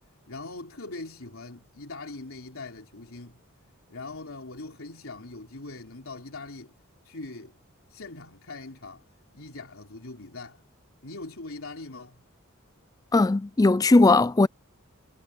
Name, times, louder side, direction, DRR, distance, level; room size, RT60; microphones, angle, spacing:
voice 1, 0.3-3.4 3.9-6.7 7.1-7.5 7.9-9.1 9.3-10.6 11.0-12.2, left 3 dB, 70° left, 3.5 m, -41 dB
voice 2, 13.1-14.5, left 2 dB, 15° left, 0.3 m, -18 dB
head